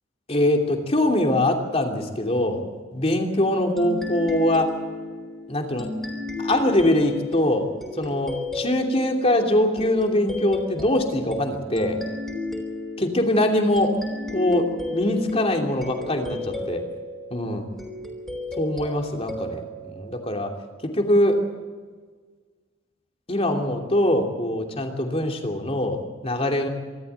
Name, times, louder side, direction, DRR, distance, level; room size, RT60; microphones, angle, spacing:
voice 1, 0.3-2.6 2.9-4.7 5.5-5.9 6.4-12.0 13.0-14.0 14.3-16.8 17.3-17.7 18.6-20.5 20.8-21.4 23.3-26.7, left 1 dB, 30° left, 3 dB, 2.9 m, -23 dB
sound 1, 3.8-20.9, left 2 dB, ahead, 4.2 m, -34 dB
26.0 x 13.5 x 8.2 m, 1.5 s
head